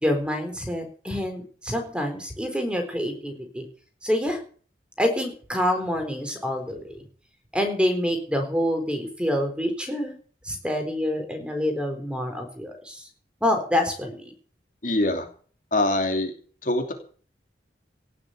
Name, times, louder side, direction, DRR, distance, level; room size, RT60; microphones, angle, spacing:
voice 1, 0.0-3.6 4.0-4.4 5.0-7.0 7.5-10.1 10.4-13.0 13.4-14.3, left 1 dB, 5° right, 5 dB, 4.0 m, -27 dB
voice 2, 14.8-15.3 15.7-16.3 16.6-16.9, left 1 dB, 50° left, 5 dB, 2.9 m, -23 dB
17.5 x 7.3 x 8.2 m, 0.44 s
head